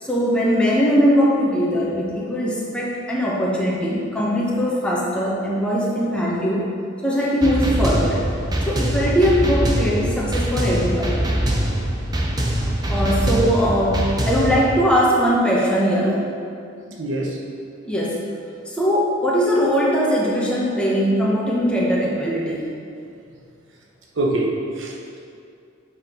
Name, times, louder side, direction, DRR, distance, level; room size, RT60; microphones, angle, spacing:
voice 1, 0.0-6.7 7.0-8.2 8.7-11.1 12.9-16.2 17.8-18.2 18.7-22.7, equal, 5° left, -5 dB, 1.2 m, -20 dB
sound 1, 7.4-14.6, right 1 dB, 20° right, 0.8 m, -23 dB
voice 2, 16.9-17.4 24.2-25.2, right 1 dB, 80° right, -2 dB, 0.9 m, -25 dB
8.1 x 4.0 x 5.2 m, 2.4 s
head